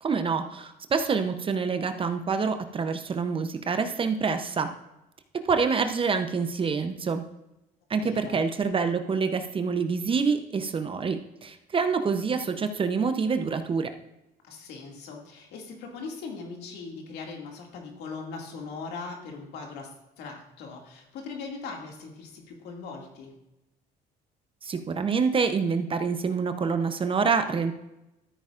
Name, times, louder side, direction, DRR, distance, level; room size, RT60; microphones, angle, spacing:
voice 1, 0.0-4.7 5.4-7.2 7.9-13.9 24.6-27.7, right 5 dB, 30° right, 8 dB, 0.7 m, -26 dB
voice 2, 8.0-8.4 14.4-23.3, left 4 dB, 80° left, 1 dB, 2.3 m, -40 dB
13.5 x 8.6 x 2.5 m, 0.92 s
cardioid pair, 110°, 17 cm